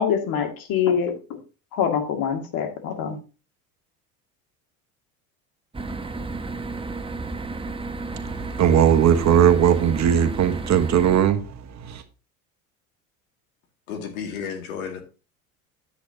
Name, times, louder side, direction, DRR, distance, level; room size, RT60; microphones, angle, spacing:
voice 1, 0.0-1.4 1.7-3.2, left 7 dB, 55° left, 2.3 m, -24 dB
sound 1, 5.7-11.2, right 3 dB, 15° right, 0.9 m, -32 dB
voice 2, 8.1-12.0, right 9 dB, 40° right, 1.3 m, -19 dB
voice 3, 13.9-15.0, left 7 dB, 80° left, 2.3 m, -32 dB
10.0 x 8.1 x 2.8 m
hypercardioid pair, 80°, 41 cm